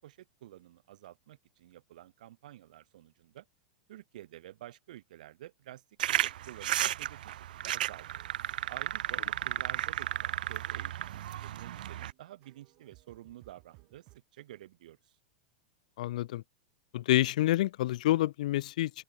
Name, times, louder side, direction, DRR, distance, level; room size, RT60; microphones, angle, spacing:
voice 1, 0.0-3.5 3.9-5.8 6.1-8.2 8.7-15.2, right 13 dB, 65° right, 5.7 m, -50 dB
sound 1, 6.0-12.1, right 12 dB, 85° right, 0.4 m, -34 dB
sound 2, 7.8-14.2, right 26 dB, 30° right, 6.2 m, -63 dB
voice 2, 16.0-16.4 16.9-19.0, left 15 dB, 55° left, 0.5 m, -28 dB
open air
supercardioid pair, 175°, 5 cm